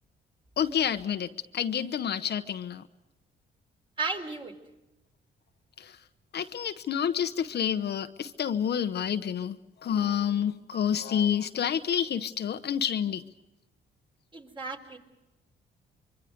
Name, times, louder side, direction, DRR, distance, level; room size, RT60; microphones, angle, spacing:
voice 1, 0.6-2.8 5.8-6.0 6.3-13.2, left 8 dB, 55° left, 9 dB, 1.0 m, -29 dB
voice 2, 4.0-4.5 10.7-10.9 14.3-15.0, right 4 dB, 25° right, 3 dB, 3.8 m, -34 dB
25.0 x 24.0 x 5.2 m, 1.0 s
cardioid pair, 90°, 20 cm